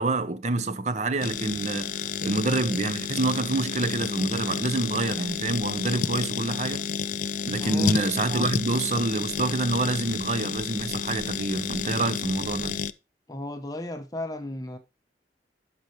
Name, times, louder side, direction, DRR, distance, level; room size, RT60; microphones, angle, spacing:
voice 1, 0.0-6.9 7.4-12.8, right 2 dB, 40° right, 0.6 m, -27 dB
sound 1, 1.2-12.9, left 7 dB, 45° left, 0.3 m, -30 dB
voice 2, 7.6-7.9 13.3-14.8, left 1 dB, 20° left, 0.7 m, -35 dB
12.0 x 5.3 x 3.0 m
head